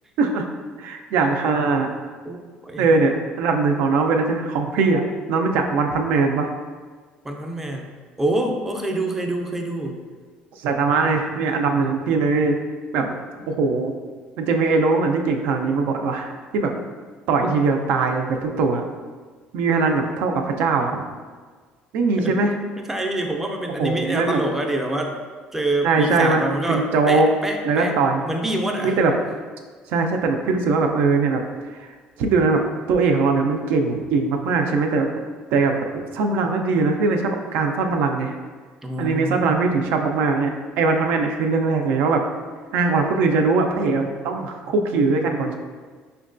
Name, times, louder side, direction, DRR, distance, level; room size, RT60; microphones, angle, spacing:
voice 1, 0.8-1.9 2.8-5.0 5.3-6.5 10.6-12.6 12.9-13.2 13.5-14.0 14.4-16.7 17.3-18.8 19.5-21.0 21.9-22.5 23.8-24.4 25.8-27.3 27.6-28.2 28.8-29.1 29.9-31.4 31.7-31.9 32.2-32.6 32.9-35.1 35.5-38.3 39.0-42.2 42.7-45.5, right 4 dB, 75° right, 4 dB, 0.4 m, -21 dB
voice 2, 7.2-7.9 8.2-9.9 22.2-22.4 22.8-25.2 25.5-27.9 28.3-29.0 38.8-39.6, right 1 dB, 10° right, 2 dB, 0.4 m, -26 dB
5.1 x 2.2 x 2.5 m, 1.5 s
cardioid pair, 120°, 3 cm